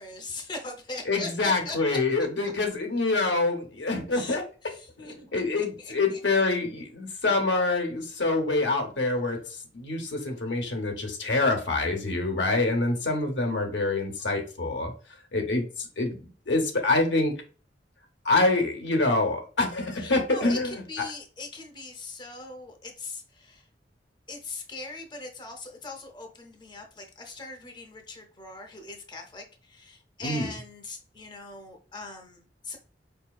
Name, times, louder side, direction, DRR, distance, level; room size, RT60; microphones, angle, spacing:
voice 1, 0.0-2.0 4.1-5.1 5.5-6.2 20.0-23.6 24.3-32.8, left 3 dB, 25° left, 4 dB, 0.7 m, -40 dB
voice 2, 1.1-4.4 5.0-9.4 9.7-14.9 15.3-16.2 16.5-17.3 18.2-20.8 30.2-30.5, left 2 dB, 75° left, 3 dB, 0.8 m, -26 dB
4.7 x 2.7 x 2.4 m, 0.39 s
head